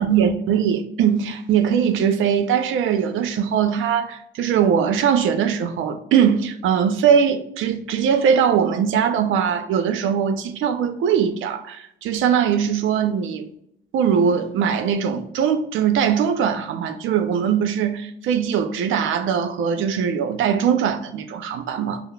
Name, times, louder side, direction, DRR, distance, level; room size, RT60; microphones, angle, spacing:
voice 1, 0.0-13.5 13.9-22.0, right 7 dB, 80° right, 0.5 m, -21 dB
5.5 x 2.0 x 2.2 m
cardioid pair, 90°, 20 cm